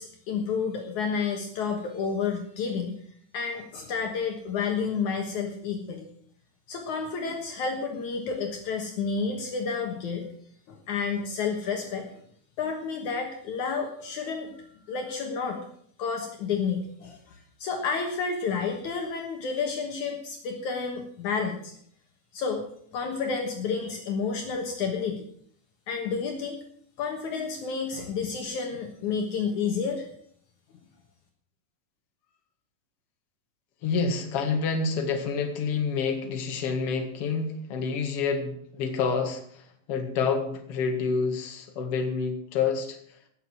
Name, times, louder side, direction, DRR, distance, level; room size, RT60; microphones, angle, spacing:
voice 1, 0.0-2.9 3.3-6.1 6.7-10.3 10.7-12.1 12.6-14.6 14.9-15.6 16.0-21.6 22.3-22.7 22.9-25.3 25.9-26.6 27.0-30.1, left 5 dB, 65° left, 3 dB, 2.7 m, -30 dB
voice 2, 33.8-43.0, left 5 dB, 50° left, 3 dB, 2.6 m, -28 dB
17.5 x 6.8 x 7.5 m, 0.64 s
omnidirectional pair, 3.9 m